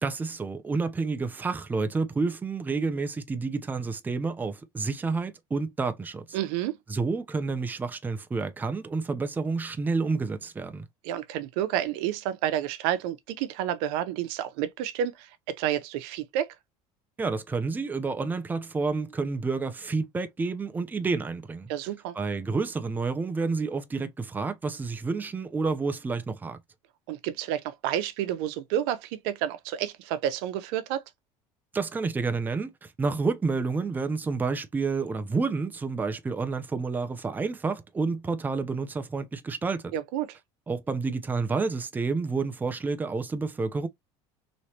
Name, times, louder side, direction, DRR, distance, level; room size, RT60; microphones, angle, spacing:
voice 1, 0.0-6.4 6.9-10.9 17.2-21.7 22.1-26.6 31.7-39.9 40.7-43.9, right 4 dB, 15° right, 0.5 m, -29 dB
voice 2, 6.3-6.8 11.0-16.5 21.7-22.1 27.1-31.0 39.9-40.4, right 11 dB, 80° right, 0.6 m, -30 dB
3.1 x 3.0 x 2.8 m
supercardioid pair, 125°, 13 cm